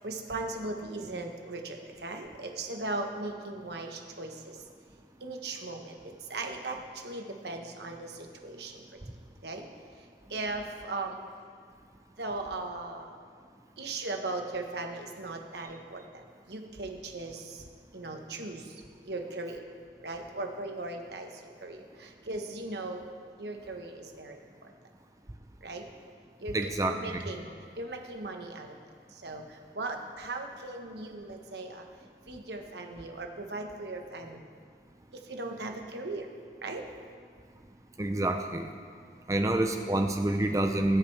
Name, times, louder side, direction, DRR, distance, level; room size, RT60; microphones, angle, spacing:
voice 1, 0.0-4.3 5.2-5.9 6.3-6.8 7.0-8.1 8.4-8.7 9.4-9.6 10.3-11.1 12.2-13.1 13.8-16.0 16.5-17.4 17.9-18.6 19.1-19.6 20.0-21.3 21.6-21.8 22.3-23.0 23.4-24.4 25.6-25.8 26.4-26.5 26.9-27.5 27.8-28.7 29.2-29.4 29.8-31.8 32.3-34.4 35.3-36.2 36.6-36.8, right 2 dB, 75° right, 4 dB, 1.3 m, -37 dB
voice 2, 26.5-27.3 38.0-38.7 39.3-41.0, right 1 dB, 20° right, 5 dB, 0.5 m, -28 dB
20.5 x 8.7 x 3.4 m, 2.1 s
head